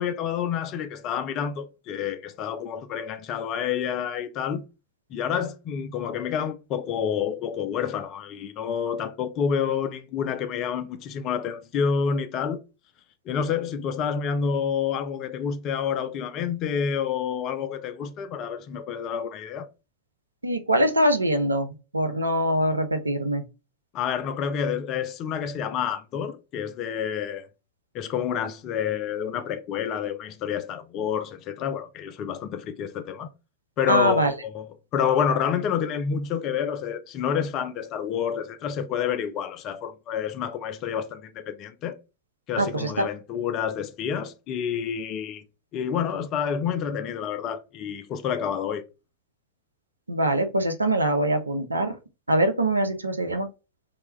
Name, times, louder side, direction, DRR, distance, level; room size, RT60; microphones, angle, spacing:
voice 1, 0.0-4.7 5.1-12.6 13.3-19.7 23.9-27.5 27.9-33.3 33.8-42.0 42.5-45.4 45.7-48.8, left 7 dB, 35° left, 0.3 m, -28 dB
voice 2, 20.4-23.4 33.9-34.3 42.6-43.1 50.1-52.0 52.3-53.5, right 1 dB, 80° right, 0.4 m, -23 dB
2.2 x 2.1 x 3.0 m
figure-of-eight pair, 90°, 0 cm